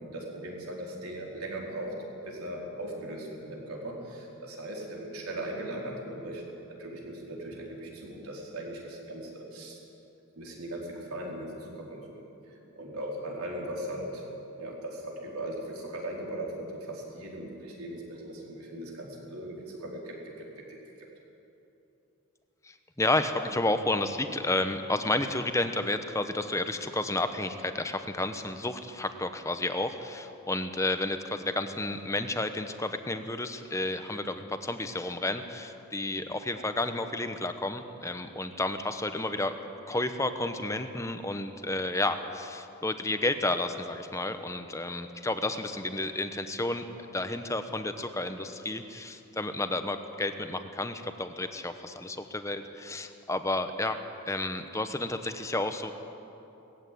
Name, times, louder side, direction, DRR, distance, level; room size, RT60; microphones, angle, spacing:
voice 1, 0.0-1.9 2.2-6.4 6.8-9.8 10.4-14.2 14.6-20.5, right 1 dB, 90° right, -2 dB, 4.5 m, -39 dB
voice 2, 22.6-39.5 39.9-46.8 47.1-54.0 54.3-55.9, left 2 dB, 15° left, 8 dB, 0.9 m, -31 dB
18.5 x 15.0 x 9.3 m, 2.9 s
head